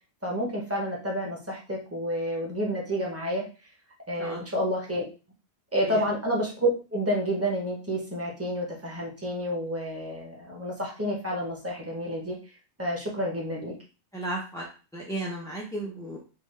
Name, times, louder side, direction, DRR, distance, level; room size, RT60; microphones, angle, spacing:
voice 1, 0.2-3.4 4.1-5.0 5.7-12.4 12.8-13.7, equal, 15° right, -2 dB, 0.8 m, -29 dB
voice 2, 14.1-14.7 14.9-16.2, right 1 dB, 5° left, -4 dB, 0.4 m, -34 dB
3.8 x 2.2 x 3.2 m, 0.33 s
omnidirectional pair, 1.2 m